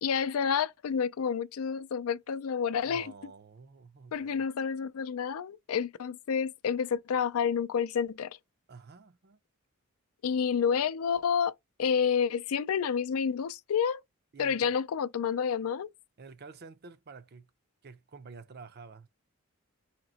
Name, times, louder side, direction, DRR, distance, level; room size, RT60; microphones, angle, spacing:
voice 1, 0.0-3.1 4.1-8.4 10.2-11.5 11.8-14.0 14.4-15.9, left 7 dB, 85° left, 0.4 m, -29 dB
voice 2, 2.9-4.4 8.7-9.4 14.3-14.8 16.2-17.5 17.8-19.1, right 4 dB, 50° right, 0.5 m, -49 dB
2.9 x 2.9 x 4.0 m
head